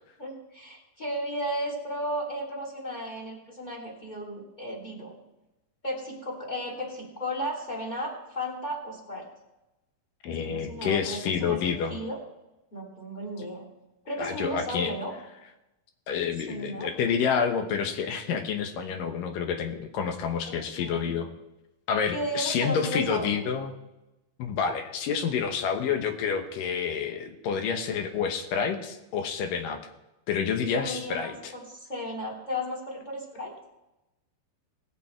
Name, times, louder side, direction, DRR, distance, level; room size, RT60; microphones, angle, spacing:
voice 1, 0.2-5.1 5.8-9.3 10.4-12.2 12.7-13.7 14.0-15.1 16.5-16.9 20.7-21.1 22.1-23.4 30.6-33.5, equal, 15° left, -3 dB, 2.8 m, -34 dB
voice 2, 10.2-12.0 14.2-14.9 16.1-21.3 21.9-23.7 24.4-29.8 30.3-31.5, left 6 dB, 75° left, 6 dB, 2.7 m, -28 dB
20.0 x 6.9 x 4.5 m, 0.96 s
omnidirectional pair, 4.1 m